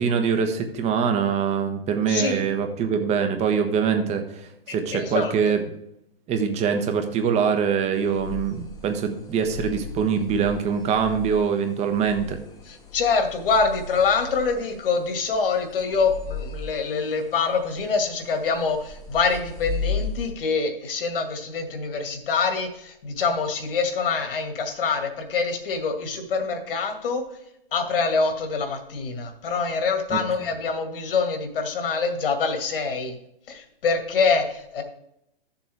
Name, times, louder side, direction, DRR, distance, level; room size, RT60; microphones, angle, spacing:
voice 1, 0.0-5.6 6.3-12.4 30.1-30.2, right 6 dB, 20° right, 6 dB, 1.2 m, -24 dB
voice 2, 2.1-2.5 4.9-5.3 12.7-27.2 27.7-33.1 33.5-34.8, left 5 dB, 65° left, 6 dB, 2.2 m, -25 dB
sound 1, 7.9-20.3, left 4 dB, 10° left, 1.2 m, -36 dB
13.5 x 7.1 x 3.5 m, 0.78 s
hypercardioid pair, 130°, 30 cm